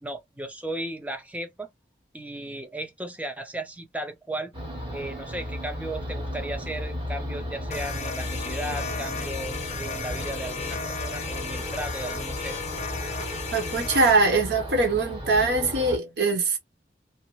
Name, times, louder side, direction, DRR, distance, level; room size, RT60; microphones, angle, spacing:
voice 1, 0.0-1.7 2.1-4.5 4.9-12.7, right 1 dB, 10° right, 0.4 m, -35 dB
sound 1, 4.5-16.0, equal, 25° right, 0.9 m, -35 dB
sound 2, 7.7-14.2, left 5 dB, 40° left, 0.6 m, -34 dB
voice 2, 13.5-16.6, right 3 dB, 70° right, 0.9 m, -22 dB
2.6 x 2.1 x 2.9 m
head